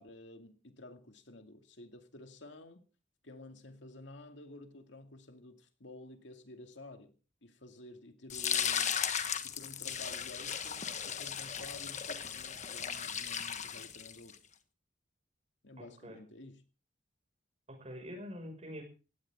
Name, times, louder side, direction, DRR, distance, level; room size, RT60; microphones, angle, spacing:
voice 1, 0.0-2.8 3.2-7.1 7.4-14.4 15.6-16.6, left 2 dB, 75° left, 2.3 m, -52 dB
sound 1, 8.3-14.3, left 8 dB, 40° left, 1.4 m, -36 dB
voice 2, 15.8-16.2 17.7-18.8, equal, 35° right, 5.7 m, -45 dB
18.5 x 16.0 x 3.6 m
head